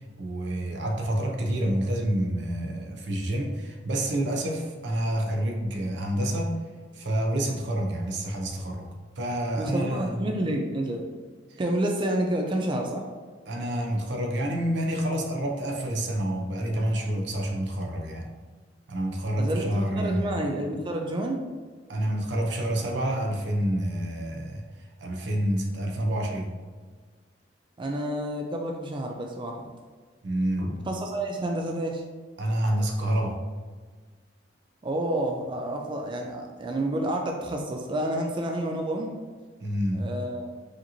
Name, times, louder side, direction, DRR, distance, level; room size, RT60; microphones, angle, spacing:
voice 1, 0.2-6.6 6.9-8.9 9.2-10.3 11.5-11.6 13.5-18.3 18.9-20.4 21.9-24.6 25.0-26.5 30.2-30.8 32.4-33.4 39.6-40.1, right 1 dB, 80° right, 2 dB, 0.6 m, -28 dB
voice 2, 9.6-11.0 11.6-13.1 19.3-21.4 27.8-29.6 30.9-32.0 34.8-39.1 39.9-40.6, right 1 dB, 30° right, 2 dB, 0.4 m, -29 dB
4.9 x 2.9 x 2.7 m, 1.5 s
head